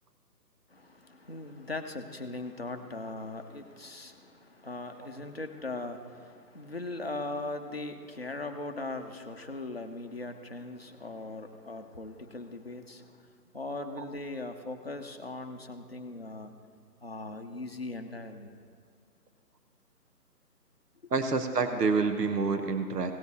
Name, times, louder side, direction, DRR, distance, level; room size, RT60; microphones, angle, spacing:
voice 1, 0.7-16.5 17.0-18.5 21.0-21.1, left 2 dB, 40° left, 4 dB, 0.7 m, -39 dB
voice 2, 21.1-23.1, right 4 dB, 70° right, 7 dB, 1.0 m, -27 dB
17.0 x 6.9 x 4.1 m, 2.2 s
hypercardioid pair, 175°, 49 cm